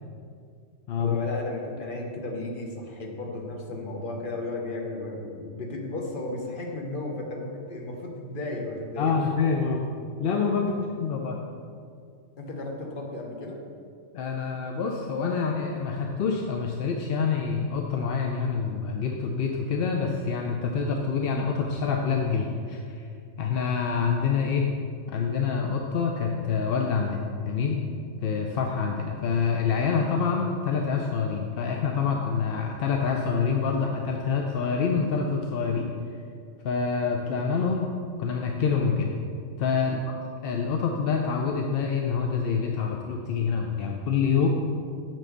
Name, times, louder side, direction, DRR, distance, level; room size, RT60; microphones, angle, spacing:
voice 1, 1.0-9.2 10.7-10.8 12.4-13.6 39.8-40.0, left 2 dB, 45° left, 1 dB, 1.0 m, -34 dB
voice 2, 9.0-9.8 10.2-11.4 14.1-23.1 23.4-24.6 25.1-27.8 28.2-35.9 36.6-37.9 38.2-39.1 39.6-40.0 40.4-44.5, left 5 dB, 60° left, 1 dB, 0.6 m, -26 dB
7.4 x 3.9 x 6.5 m, 2.4 s
omnidirectional pair, 1.3 m